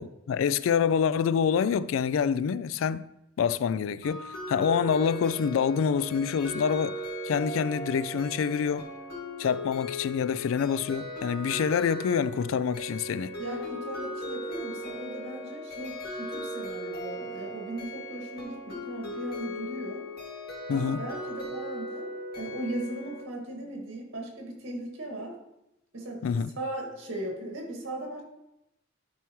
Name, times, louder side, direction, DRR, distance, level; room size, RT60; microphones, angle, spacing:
voice 1, 0.0-3.1 3.4-7.0 7.2-8.9 9.4-13.3 20.7-21.0 26.2-26.5, left 7 dB, 75° left, 0.3 m, -26 dB
sound 1, 4.0-23.2, equal, 55° left, 2.0 m, -38 dB
voice 2, 13.4-20.0 20.7-22.1 22.4-25.4 25.9-28.2, right 1 dB, 80° right, 1.9 m, -38 dB
11.5 x 4.6 x 3.1 m
head